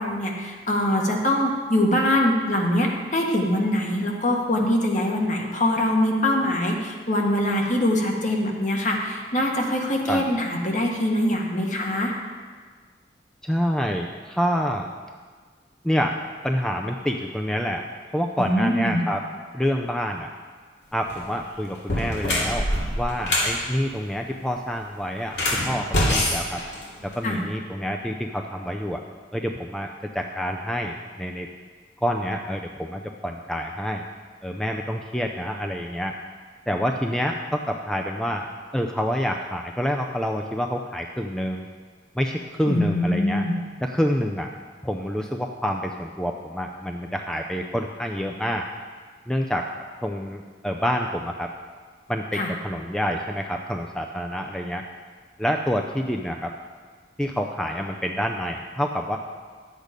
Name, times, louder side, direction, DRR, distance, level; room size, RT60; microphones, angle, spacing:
voice 1, 0.0-12.1 18.4-19.0 27.2-27.4 42.7-43.6 52.3-52.5, left 1 dB, 45° left, 0 dB, 1.5 m, -23 dB
voice 2, 13.4-14.9 15.8-16.2 16.4-17.8 18.1-19.2 19.5-20.3 20.9-22.7 22.9-26.6 27.0-29.0 29.3-29.9 30.1-31.5 32.0-34.0 34.4-36.1 36.7-41.7 42.2-43.5 43.8-44.5 44.8-48.7 49.3-49.7 50.0-51.5 52.1-54.8 55.4-56.5 57.2-59.2, equal, 5° left, 2 dB, 0.4 m, -27 dB
sound 1, 21.0-21.2 21.8-23.6 25.2-27.3, left 1 dB, 75° left, 2.5 m, -24 dB
10.5 x 8.2 x 5.1 m, 1.5 s
head